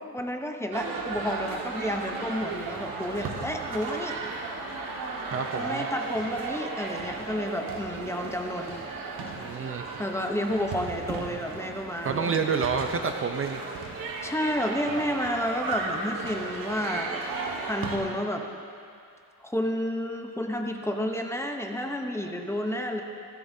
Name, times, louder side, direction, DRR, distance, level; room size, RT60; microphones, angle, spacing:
voice 1, 0.1-4.2 5.5-8.8 10.0-12.3 14.2-17.2 17.6-18.5 19.4-23.0, equal, 10° left, 3 dB, 0.8 m, -30 dB
sound 1, 0.7-18.0, right 4 dB, 75° right, 1.7 m, -35 dB
voice 2, 5.3-5.9 9.4-9.9 12.0-13.6, right 5 dB, 40° right, 6 dB, 0.7 m, -28 dB
16.5 x 15.0 x 2.8 m, 2.4 s
cardioid pair, 120°, 34 cm